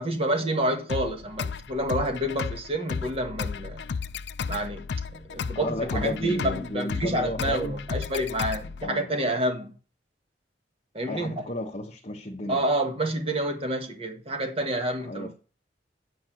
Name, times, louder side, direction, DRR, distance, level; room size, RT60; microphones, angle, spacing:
voice 1, 0.0-3.9 4.5-9.7 10.9-11.5 12.5-15.3, right 1 dB, 35° right, 1.6 m, -28 dB
sound 1, 0.9-8.9, left 5 dB, 75° left, 0.5 m, -34 dB
voice 2, 5.5-7.8 8.8-9.1 11.1-12.6 15.0-15.3, left 1 dB, 35° left, 1.1 m, -33 dB
8.2 x 5.2 x 7.6 m
head